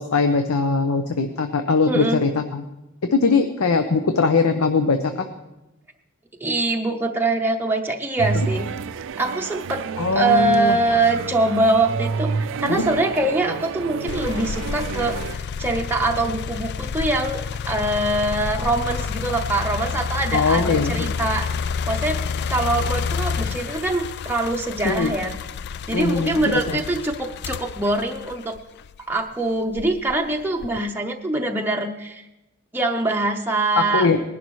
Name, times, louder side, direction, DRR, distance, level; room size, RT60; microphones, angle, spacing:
voice 1, 0.0-2.6 3.1-5.3 10.0-10.8 12.7-12.8 20.3-21.1 24.8-25.1 25.9-26.8 33.8-34.2, left 4 dB, 80° left, 7 dB, 0.7 m, -21 dB
voice 2, 1.9-2.2 6.4-8.7 9.2-9.9 10.1-21.5 21.9-22.2 22.5-25.3 25.9-28.6 29.1-32.2 32.7-34.1, right 2 dB, 10° right, 1 dB, 0.7 m, -23 dB
sound 1, 8.2-15.4, right 5 dB, 65° right, 0.4 m, -29 dB
sound 2, 14.1-29.1 29.7-30.9, left 6 dB, 50° left, 0.3 m, -29 dB
20.0 x 11.0 x 3.1 m, 0.98 s
head